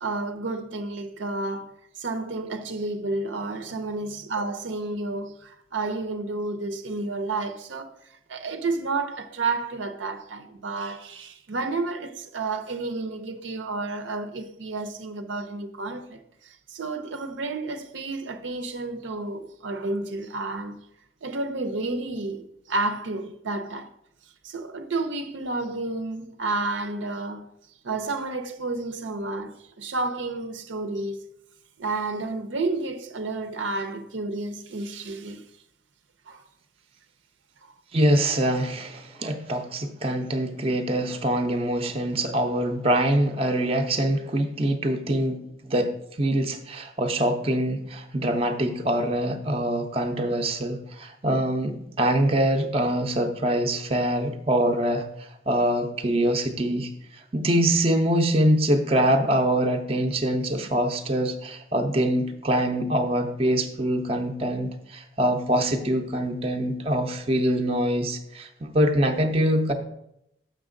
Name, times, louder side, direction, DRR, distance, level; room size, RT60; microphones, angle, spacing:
voice 1, 0.0-7.9 8.3-16.2 16.7-20.8 21.2-23.9 24.4-27.5 27.8-31.2 31.8-35.4 36.3-36.4 39.2-39.3, right 3 dB, 80° right, 0.6 m, -31 dB
voice 2, 37.9-45.9 46.2-55.1 55.5-56.9 57.3-69.7, right 1 dB, 30° right, 0.6 m, -24 dB
6.6 x 6.2 x 3.8 m
head